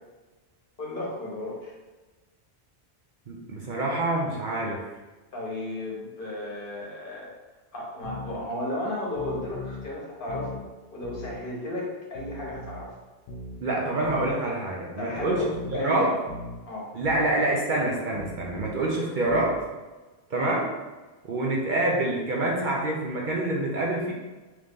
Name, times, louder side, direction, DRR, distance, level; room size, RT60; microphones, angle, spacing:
voice 1, 0.8-1.7 5.3-7.3 7.7-10.6 10.9-12.9 15.0-15.4 15.7-16.1 16.7-16.9, left 1 dB, 55° left, -4 dB, 1.1 m, -34 dB
voice 2, 3.3-4.8 13.6-16.1 16.9-19.5 20.3-20.7 21.2-24.1, right 2 dB, 55° right, -3 dB, 0.7 m, -26 dB
sound 1, 8.0-8.4 9.1-9.9 10.3-10.6 11.0-11.4 12.1-12.9 13.3-13.6 14.0-14.4 15.2-15.8 16.3-16.6 17.0-17.3 18.1-18.8 19.3-19.6, left 2 dB, 85° left, 0.9 m, -39 dB
3.1 x 2.6 x 3.5 m, 1.2 s
omnidirectional pair, 1.1 m